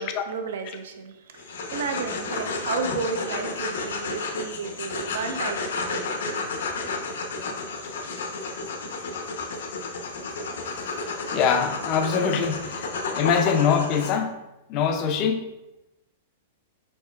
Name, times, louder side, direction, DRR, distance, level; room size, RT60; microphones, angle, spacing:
voice 1, 0.0-6.1, right 5 dB, 70° right, 6 dB, 0.6 m, -33 dB
sound 1, 1.4-14.2, left 3 dB, 80° left, 0.7 m, -31 dB
voice 2, 11.3-14.3 14.7-15.4, left 6 dB, 25° left, 6 dB, 0.4 m, -24 dB
5.3 x 4.1 x 2.3 m, 0.97 s
supercardioid pair, 175°, 0 cm